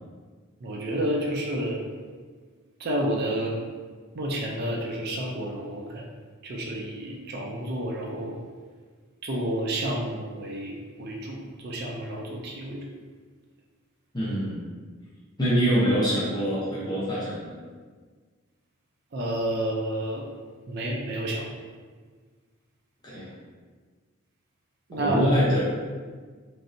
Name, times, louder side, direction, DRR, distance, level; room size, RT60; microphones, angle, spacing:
voice 1, 0.6-1.9 2.8-3.6 4.1-6.1 6.4-8.4 9.2-12.8 19.1-20.3 20.7-21.5 24.9-25.2, right 1 dB, 50° right, -1 dB, 0.4 m, -30 dB
voice 2, 14.1-14.6 15.4-17.5 23.0-23.3 25.0-25.6, equal, 20° left, -9 dB, 0.7 m, -24 dB
3.1 x 2.6 x 2.6 m, 1.5 s
head